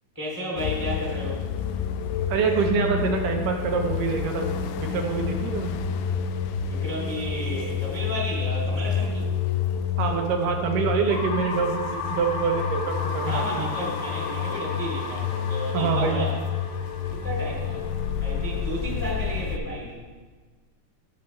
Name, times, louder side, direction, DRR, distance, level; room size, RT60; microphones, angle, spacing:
voice 1, 0.1-1.4 6.7-9.3 13.2-16.3 17.1-17.8 18.2-20.0, equal, 10° left, -4 dB, 1.7 m, -32 dB
sound 1, 0.6-19.6, left 7 dB, 80° left, 1.8 m, -29 dB
voice 2, 2.3-4.5 4.8-5.8 10.0-13.9 15.7-16.2, right 6 dB, 80° right, 3 dB, 2.3 m, -26 dB
sound 2, 11.1-18.9, left 4 dB, 65° left, 1.8 m, -35 dB
15.5 x 6.0 x 3.1 m, 1.4 s
omnidirectional pair, 3.9 m